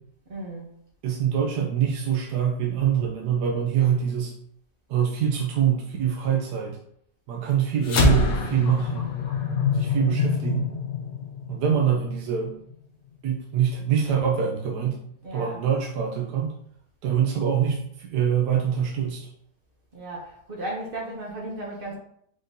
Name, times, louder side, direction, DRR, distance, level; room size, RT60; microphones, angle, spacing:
voice 1, 0.3-0.7 15.2-15.6 19.9-22.0, right 1 dB, 45° right, -2 dB, 0.8 m, -35 dB
voice 2, 1.0-4.3 4.9-6.8 7.3-9.2 9.7-10.7 11.5-12.6 13.2-15.0 15.3-16.5 17.0-19.3, right 8 dB, 70° right, -1 dB, 1.2 m, -24 dB
sound 1, 7.8-12.5, left 4 dB, 65° left, 1.1 m, -25 dB
5.2 x 3.6 x 2.7 m, 0.70 s
omnidirectional pair, 1.9 m